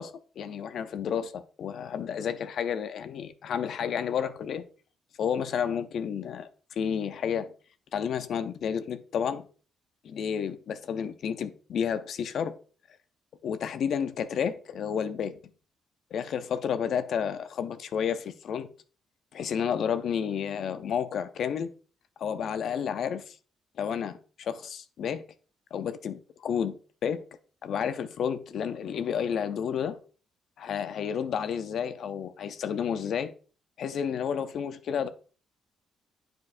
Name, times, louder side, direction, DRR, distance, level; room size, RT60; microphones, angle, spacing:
voice 1, 0.0-4.7 5.2-6.5 6.8-7.5 7.9-9.5 10.0-12.6 13.4-15.3 16.1-18.7 19.3-21.7 22.2-23.4 23.8-25.2 25.7-26.8 27.0-27.2 27.6-30.0 30.6-33.3 33.8-35.1, left 7 dB, 65° left, 0.5 m, -31 dB
8.5 x 4.5 x 2.5 m
cardioid pair, 90°, 0 cm